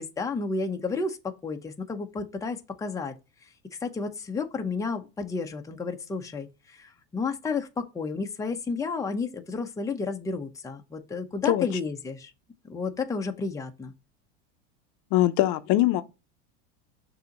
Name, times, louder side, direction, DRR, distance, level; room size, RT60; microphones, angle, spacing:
voice 1, 0.0-3.1 3.4-3.5 3.8-12.3 12.6-13.9, left 4 dB, 10° left, 0.8 m, -32 dB
voice 2, 15.1-16.0, left 15 dB, 50° left, 0.7 m, -22 dB
6.7 x 2.8 x 5.2 m
supercardioid pair, 125°, 38 cm